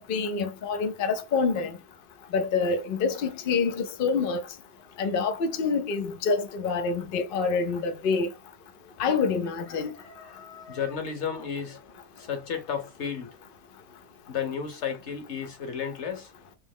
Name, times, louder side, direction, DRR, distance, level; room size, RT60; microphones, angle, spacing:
voice 1, 0.1-1.7 2.3-4.4 5.0-8.3 9.0-9.9, left 4 dB, 65° left, 0.5 m, -26 dB
voice 2, 3.2-3.9 6.8-6.9 8.8-8.9 9.7-13.4 14.3-16.3, left 7 dB, 50° left, 1.2 m, -34 dB
3.3 x 3.0 x 3.5 m
omnidirectional pair, 1.6 m